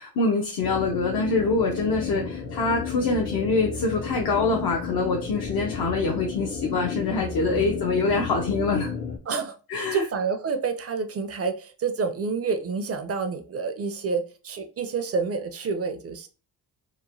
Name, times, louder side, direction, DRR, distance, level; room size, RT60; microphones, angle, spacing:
voice 1, 0.0-9.0 9.7-10.0, left 3 dB, 65° left, 0 dB, 0.6 m, -25 dB
sound 1, 0.6-9.2, left 6 dB, 25° left, 0.4 m, -33 dB
voice 2, 9.3-16.3, right 5 dB, 35° right, 8 dB, 0.4 m, -28 dB
2.9 x 2.1 x 2.6 m, 0.34 s
cardioid pair, 100°, 40 cm